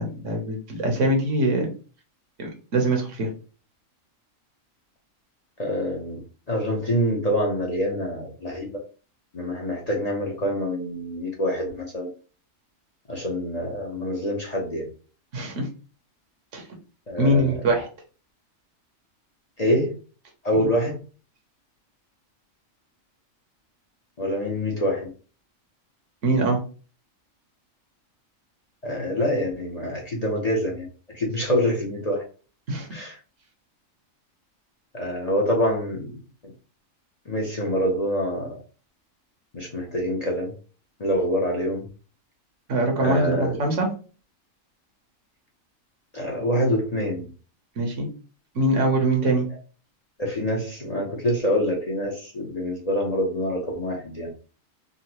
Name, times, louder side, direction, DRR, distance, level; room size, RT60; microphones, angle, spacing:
voice 1, 0.0-1.7 2.4-3.3 15.3-15.7 16.5-16.6 17.2-17.9 26.2-26.6 32.7-32.9 42.7-43.9 47.8-48.1 48.5-49.5, right 1 dB, 65° right, 2 dB, 1.3 m, -23 dB
voice 2, 5.6-6.2 6.5-8.8 9.3-12.1 13.1-14.9 17.1-17.7 19.6-19.9 20.4-21.0 24.2-25.1 28.8-30.9 31.1-32.2 32.9-33.2 34.9-36.2 36.4-36.5 37.3-38.5 39.5-40.5 41.0-41.9 43.0-43.6 46.1-47.3 50.2-54.3, equal, 35° left, -1 dB, 0.7 m, -26 dB
3.8 x 2.1 x 2.9 m, 0.36 s
omnidirectional pair, 1.4 m